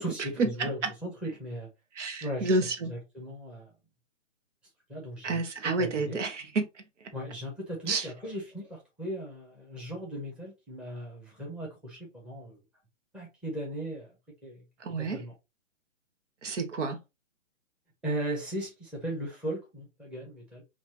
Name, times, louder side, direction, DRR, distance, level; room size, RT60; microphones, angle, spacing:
voice 1, 0.0-1.7 2.2-3.7 4.9-6.2 7.1-12.6 13.1-14.1 14.4-14.6 15.0-15.3 18.0-20.6, right 1 dB, 5° right, 0.8 m, -37 dB
voice 2, 2.0-2.9 5.2-6.6 7.9-8.1 14.8-15.2 16.4-17.0, right 3 dB, 70° right, 1.0 m, -29 dB
4.2 x 2.5 x 3.0 m
hypercardioid pair, 145°, 38 cm